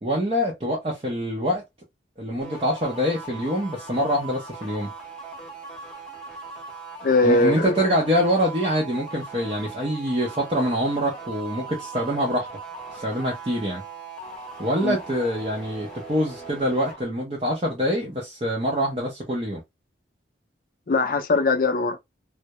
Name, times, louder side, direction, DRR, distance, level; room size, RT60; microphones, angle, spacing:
voice 1, 0.0-1.6 2.2-4.9 7.2-12.5 12.9-13.8 14.6-19.6, equal, 30° right, 0.5 m, -25 dB
sound 1, 2.4-17.0, right 4 dB, 5° left, 0.7 m, -39 dB
voice 2, 7.0-7.9 14.8-15.0 20.9-22.0, left 3 dB, 50° left, 0.4 m, -21 dB
2.2 x 2.0 x 2.7 m
head